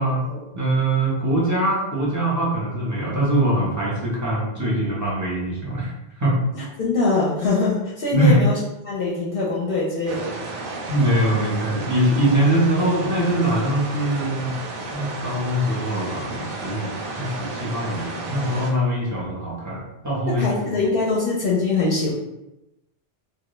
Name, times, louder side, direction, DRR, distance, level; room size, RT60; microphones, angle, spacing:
voice 1, 0.5-5.9 6.2-6.4 8.1-8.4 10.9-14.5 14.9-20.4, right 1 dB, 20° right, -5 dB, 0.5 m, -22 dB
voice 2, 6.5-8.6 8.8-10.3 16.3-16.5 20.3-22.1, left 3 dB, 65° left, -5 dB, 0.7 m, -23 dB
sound 1, 10.0-18.7, right 2 dB, 65° right, 0.7 m, -32 dB
2.2 x 2.2 x 2.9 m, 0.94 s
omnidirectional pair, 1.1 m